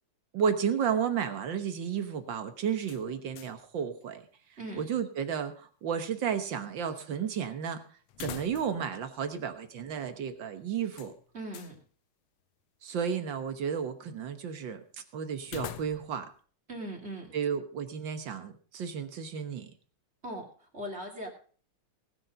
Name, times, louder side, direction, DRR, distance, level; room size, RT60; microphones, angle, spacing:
voice 1, 0.3-4.2 4.8-7.8 8.2-11.1 12.8-16.3 17.3-19.7, right 7 dB, 55° right, 9 dB, 1.3 m, -32 dB
sound 1, 2.8-3.7 4.0-4.1 8.1-8.9 9.2-9.3 10.9-11.8 15.4-16.3, left 11 dB, 80° left, 1.1 m, -44 dB
voice 2, 11.3-11.8 16.7-17.3 20.2-21.3, right 1 dB, 20° right, 2 dB, 2.6 m, -39 dB
19.0 x 7.2 x 5.1 m, 0.42 s
omnidirectional pair, 3.4 m